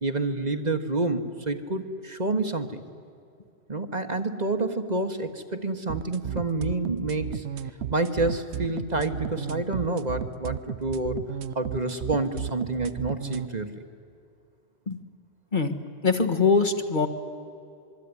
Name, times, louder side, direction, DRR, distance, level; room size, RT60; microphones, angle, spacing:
voice 1, 0.0-2.8 3.7-7.4 7.9-11.3 11.5-13.8, right 2 dB, 40° right, 7 dB, 1.4 m, -28 dB
sound 1, 5.9-13.5, right 9 dB, 85° right, 1.1 m, -33 dB
voice 2, 16.0-17.1, left 4 dB, 45° left, 7 dB, 1.8 m, -22 dB
26.5 x 22.5 x 9.7 m, 2.6 s
omnidirectional pair, 1.1 m